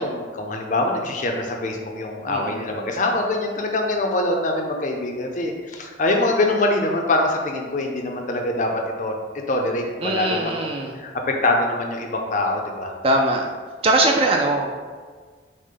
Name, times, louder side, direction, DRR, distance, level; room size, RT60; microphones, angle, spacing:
voice 1, 0.0-9.1 9.5-12.9, left 2 dB, 40° left, 2 dB, 0.5 m, -24 dB
voice 2, 2.3-2.7 10.0-11.0 13.0-13.4 13.8-14.7, right 2 dB, 30° right, 1 dB, 0.3 m, -21 dB
6.3 x 2.1 x 3.8 m, 1.5 s
head